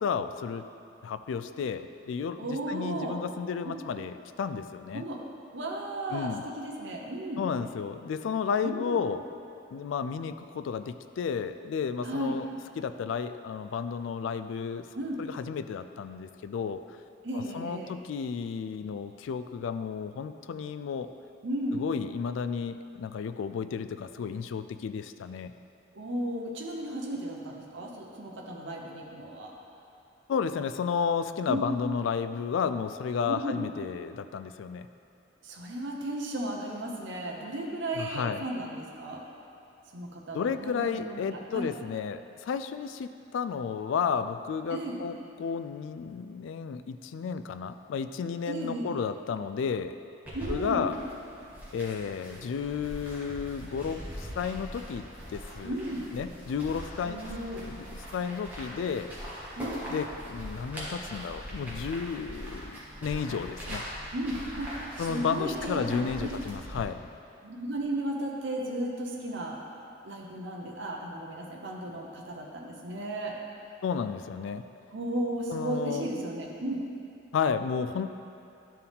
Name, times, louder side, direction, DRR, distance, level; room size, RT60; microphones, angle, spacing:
voice 1, 0.0-0.7 1.0-5.0 6.1-6.5 7.4-9.2 9.7-12.5 12.8-14.9 15.2-16.8 17.3-21.1 21.7-25.5 30.3-34.9 37.9-38.4 40.3-50.0 50.5-51.0 51.7-55.8 56.1-59.1 59.9-63.8 65.0-67.0 73.8-74.6 75.5-76.1 77.3-78.2, left 6 dB, 75° left, 10 dB, 0.3 m, -32 dB
voice 2, 2.4-3.2 3.6-3.8 4.9-5.2 5.5-7.4 8.6-9.0 12.0-12.3 14.9-15.2 17.2-17.9 21.4-21.8 25.9-29.5 31.5-31.7 33.3-33.6 35.4-39.2 39.9-41.7 44.7-45.0 48.5-48.9 50.3-50.8 55.6-56.1 57.0-57.6 59.6-59.8 64.1-66.4 67.4-69.6 70.0-73.4 74.9-76.8, right 1 dB, 65° right, -1 dB, 0.9 m, -34 dB
sound 1, 50.3-66.8, equal, 10° right, 1.4 m, -41 dB
11.0 x 4.5 x 3.6 m, 2.7 s
head